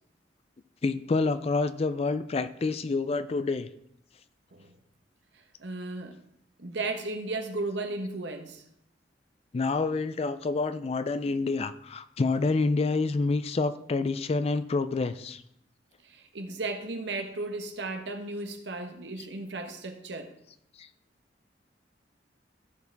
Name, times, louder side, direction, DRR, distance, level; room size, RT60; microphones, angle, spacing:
voice 1, 0.8-3.7 9.5-15.4 20.8-20.9, left 3 dB, 35° left, 0.4 m, -28 dB
voice 2, 5.6-6.2 6.6-8.6 16.0-20.4, right 2 dB, 75° right, 1.1 m, -35 dB
14.5 x 4.8 x 3.5 m
head